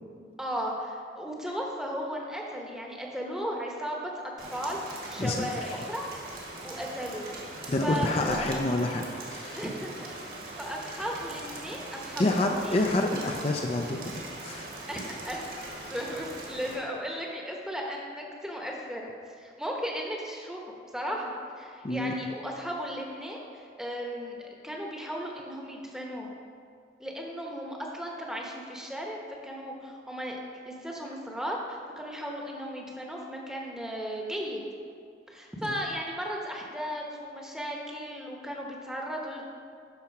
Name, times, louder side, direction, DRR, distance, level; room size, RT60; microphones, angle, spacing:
voice 1, 0.4-4.2 4.5-4.8 5.1-6.1 6.6-8.5 9.6-10.2 10.6-12.8 14.9-15.5 15.9-19.1 19.4-20.6 20.9-24.4 24.6-26.3 27.0-30.4 30.7-34.6 35.3-39.5, equal, 5° right, -1 dB, 0.9 m, -35 dB
Rain, 4.4-16.7, right 2 dB, 55° right, 1.5 m, -41 dB
voice 2, 5.2-5.7 7.7-9.6 12.2-14.1 14.4-14.7 21.8-22.1 35.6-35.7, left 2 dB, 35° left, 2 dB, 0.5 m, -28 dB
10.5 x 4.3 x 6.0 m, 2.3 s
head